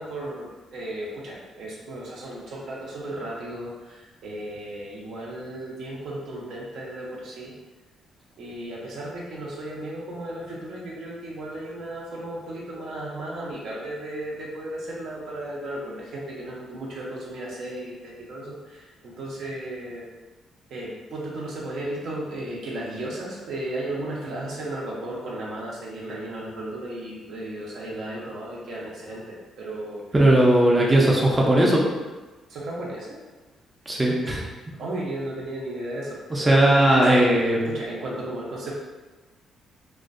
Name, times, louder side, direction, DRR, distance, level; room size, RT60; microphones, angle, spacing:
voice 1, 0.0-7.5 8.4-20.1 20.7-30.1 30.7-31.0 32.5-33.2 34.8-38.7, right 1 dB, 70° right, -4 dB, 0.6 m, -35 dB
voice 2, 30.1-31.8 33.9-34.4 36.3-37.6, right 1 dB, 20° right, -3 dB, 0.4 m, -18 dB
2.4 x 2.1 x 2.4 m, 1.2 s
cardioid pair, 90°, 0 cm